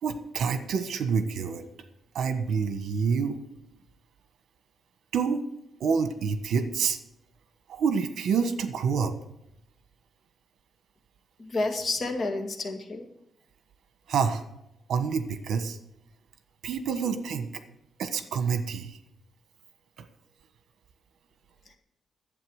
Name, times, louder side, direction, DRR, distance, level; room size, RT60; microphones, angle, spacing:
voice 1, 0.0-1.6 2.1-3.4 5.1-5.4 5.8-7.0 7.7-9.1 14.1-14.4 14.9-15.8 16.6-17.5 18.0-19.0 20.0-20.1, right 6 dB, 70° right, 9 dB, 1.3 m, -27 dB
voice 2, 11.4-13.1, left 2 dB, 40° left, 4 dB, 2.0 m, -30 dB
11.5 x 8.3 x 6.5 m, 0.81 s
wide cardioid pair, 165°, 0 cm